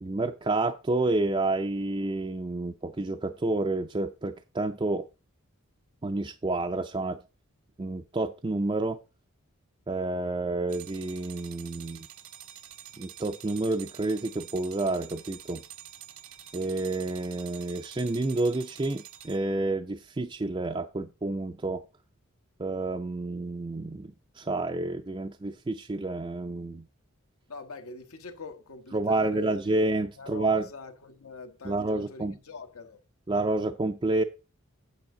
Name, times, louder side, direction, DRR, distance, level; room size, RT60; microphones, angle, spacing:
voice 1, 0.0-5.1 6.0-7.2 7.8-9.0 9.9-12.1 13.0-15.6 16.5-21.8 22.6-26.9 28.9-30.6 31.6-32.4 33.3-34.2, right 2 dB, 20° right, 0.4 m, -29 dB
sound 1, 10.7-19.7, right 11 dB, 70° right, 0.8 m, -47 dB
voice 2, 27.5-29.6 30.2-33.0, left 4 dB, 80° left, 1.2 m, -43 dB
8.7 x 8.1 x 3.8 m
head